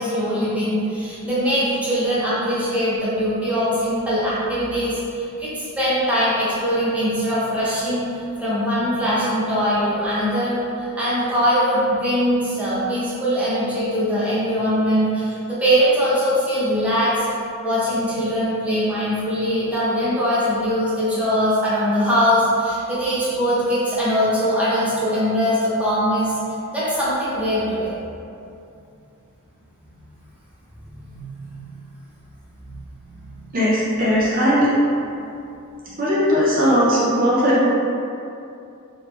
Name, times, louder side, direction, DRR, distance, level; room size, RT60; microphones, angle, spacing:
voice 1, 0.0-5.5 5.8-17.2 17.6-26.4 26.7-27.9 30.8-31.6 32.6-32.8 33.1-33.2, equal, 5° right, -11 dB, 0.9 m, -21 dB
voice 2, 33.5-34.7 36.0-37.7, equal, 40° right, -8 dB, 0.6 m, -18 dB
3.2 x 2.7 x 3.2 m, 2.6 s
head